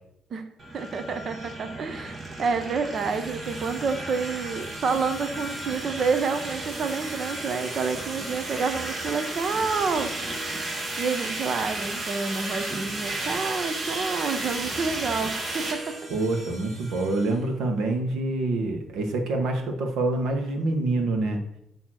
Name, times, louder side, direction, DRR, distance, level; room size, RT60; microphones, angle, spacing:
sound 1, 0.6-17.4, right 2 dB, 35° right, 1.6 m, -34 dB
voice 1, 0.7-10.1 11.0-15.9, right 5 dB, 55° right, 8 dB, 0.8 m, -28 dB
voice 2, 16.1-21.4, right 2 dB, 85° right, 4 dB, 1.3 m, -26 dB
8.7 x 3.1 x 6.3 m, 0.76 s
cardioid pair, 90°, 0 cm